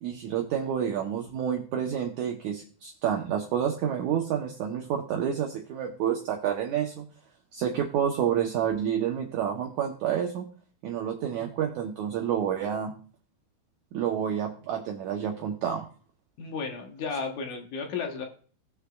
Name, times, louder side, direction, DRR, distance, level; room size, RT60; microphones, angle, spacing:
voice 1, 0.0-7.1 7.5-10.5 10.8-12.9 13.9-15.9, right 9 dB, 70° right, 2 dB, 1.9 m, -29 dB
voice 2, 16.4-18.3, left 5 dB, 65° left, 3 dB, 2.2 m, -33 dB
18.5 x 6.5 x 2.3 m, 0.43 s
omnidirectional pair, 4.3 m